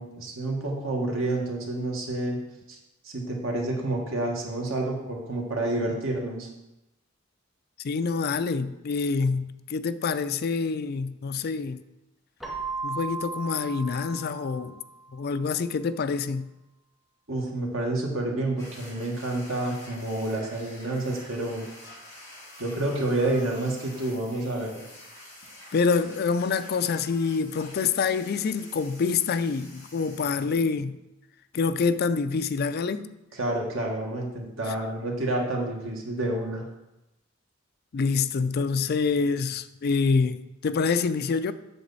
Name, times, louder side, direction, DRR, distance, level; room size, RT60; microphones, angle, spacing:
voice 1, 0.0-2.4 2.7-2.8 3.0-6.5 17.3-21.6 22.6-24.8 33.3-36.7, right 2 dB, 90° right, 1.7 m, -29 dB
voice 2, 7.8-11.8 12.8-14.8 15.1-16.5 25.7-31.0 31.5-33.1 37.9-41.5, left 5 dB, 50° left, 0.4 m, -26 dB
Keyboard (musical), 12.4-15.1, right 4 dB, ahead, 0.7 m, -36 dB
sound 1, 18.6-30.4, left 1 dB, 20° left, 3.2 m, -48 dB
7.8 x 6.8 x 4.1 m
head